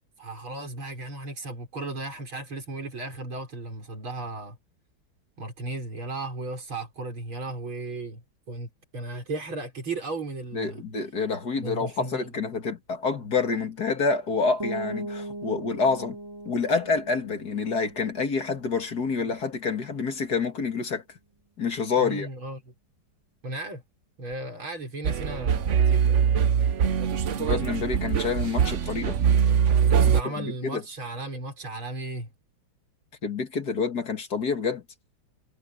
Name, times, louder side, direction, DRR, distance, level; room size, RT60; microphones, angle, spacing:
voice 1, 0.2-4.6 5.4-8.2 8.5-10.8 11.6-12.3 22.0-22.6 23.4-23.8 24.2-26.2 29.9-32.3, right 2 dB, 85° right, 6.3 m, -35 dB
voice 2, 10.5-16.2 16.5-21.0 21.6-22.3 27.4-29.2 30.4-30.8 33.2-34.8, left 4 dB, 50° left, 2.7 m, -27 dB
sound 1, 14.6-20.2, right 2 dB, 10° right, 5.2 m, -40 dB
sound 2, 25.0-30.2, right 7 dB, 55° right, 0.9 m, -22 dB
omnidirectional pair, 2.2 m